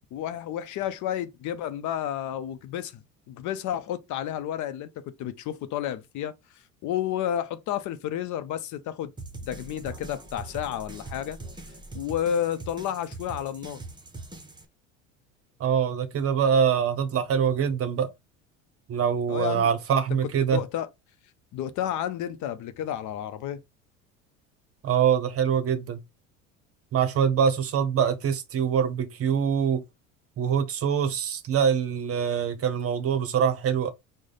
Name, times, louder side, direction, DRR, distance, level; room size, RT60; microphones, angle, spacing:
voice 1, 0.1-3.0 3.3-6.3 6.8-9.1 9.5-11.4 11.9-13.8 19.3-19.7 20.5-20.9 21.5-23.6, left 10 dB, 50° left, 0.7 m, -31 dB
sound 1, 9.2-14.7, right 2 dB, 10° right, 0.9 m, -42 dB
voice 2, 15.6-18.1 18.9-20.6 24.8-26.0 26.9-29.8 30.4-33.9, right 7 dB, 40° right, 0.8 m, -24 dB
4.8 x 2.2 x 3.9 m
hypercardioid pair, 75°, 38 cm